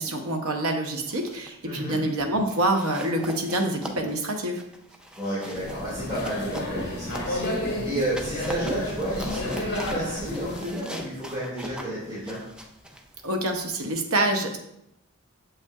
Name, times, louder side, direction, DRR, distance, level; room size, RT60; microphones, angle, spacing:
voice 1, 0.0-4.6 13.2-14.6, right 1 dB, 80° right, 4 dB, 0.9 m, -26 dB
sound 1, 1.1-1.5 1.8-2.1 2.5-7.6 8.0-13.9, equal, 5° right, 0.4 m, -42 dB
voice 2, 1.6-2.0 5.2-12.4, right 1 dB, 20° right, -10 dB, 2.1 m, -31 dB
sound 2, 5.6-10.7, left 1 dB, 50° left, 1.4 m, -31 dB
7.2 x 5.5 x 2.4 m, 0.82 s
head